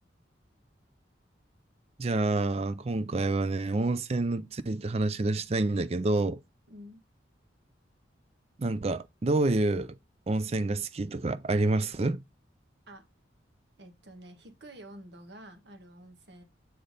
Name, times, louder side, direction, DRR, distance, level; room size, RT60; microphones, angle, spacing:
voice 1, 2.0-6.4 8.6-10.0 10.3-12.2, right 2 dB, 30° right, 0.4 m, -28 dB
voice 2, 6.7-7.0 12.9-13.0 13.8-16.4, right 1 dB, 60° right, 1.3 m, -49 dB
7.8 x 3.4 x 4.0 m
head